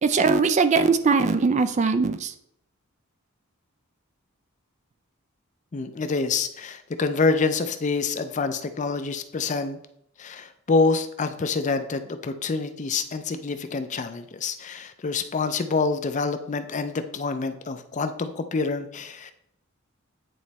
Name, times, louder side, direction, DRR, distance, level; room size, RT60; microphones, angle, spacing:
voice 1, 0.0-2.3, right 4 dB, 35° right, 10 dB, 0.3 m, -20 dB
voice 2, 5.7-9.8 10.2-19.3, left 4 dB, 35° left, 9 dB, 0.4 m, -27 dB
9.2 x 3.1 x 4.1 m, 0.71 s
head